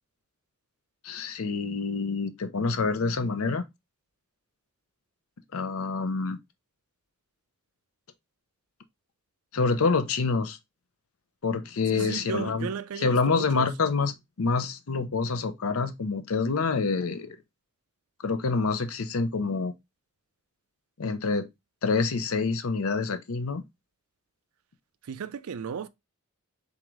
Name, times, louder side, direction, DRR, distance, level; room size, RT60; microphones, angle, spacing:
voice 1, 1.0-3.6 5.5-6.4 9.5-10.6 11.4-12.7 13.0-17.4 18.2-19.7 21.0-21.5 21.8-23.6, left 4 dB, 75° left, 0.6 m, -27 dB
voice 2, 11.9-13.7 25.0-25.9, right 6 dB, 80° right, 0.4 m, -35 dB
3.7 x 3.6 x 3.0 m
head